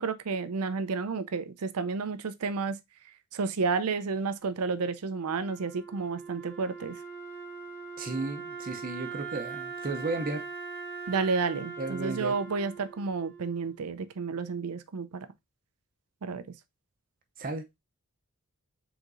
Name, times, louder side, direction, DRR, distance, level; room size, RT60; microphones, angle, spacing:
voice 1, 0.0-2.8 3.3-6.9 11.1-15.3 16.2-16.4, right 4 dB, 90° right, 0.5 m, -31 dB
Wind instrument woodwind instrument, 5.1-14.2, right 5 dB, 10° left, 0.9 m, -41 dB
voice 2, 8.0-10.5 11.8-12.3 17.4-17.7, right 3 dB, 40° right, 0.6 m, -34 dB
4.7 x 3.7 x 2.5 m
head